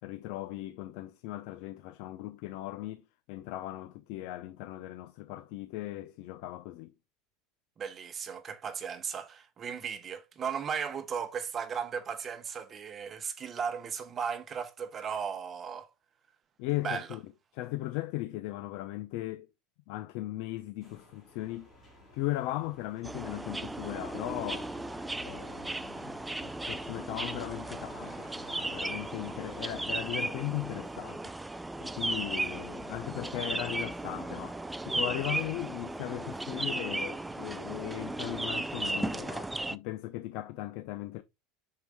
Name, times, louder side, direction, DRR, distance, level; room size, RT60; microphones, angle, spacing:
voice 1, 0.0-3.0 3.3-6.9 16.6-17.2 17.5-19.5 19.9-21.7 22.1-24.7 25.2-31.2 31.8-34.6 34.9-41.2, left 16 dB, 60° left, 0.6 m, -38 dB
voice 2, 7.8-15.9 16.8-17.1, right 7 dB, 25° right, 0.9 m, -36 dB
sound 1, 20.8-29.7, left 3 dB, 15° left, 4.3 m, -54 dB
sound 2, 23.0-39.8, right 2 dB, 5° right, 0.3 m, -36 dB
6.3 x 4.8 x 3.4 m
supercardioid pair, 150°, 0 cm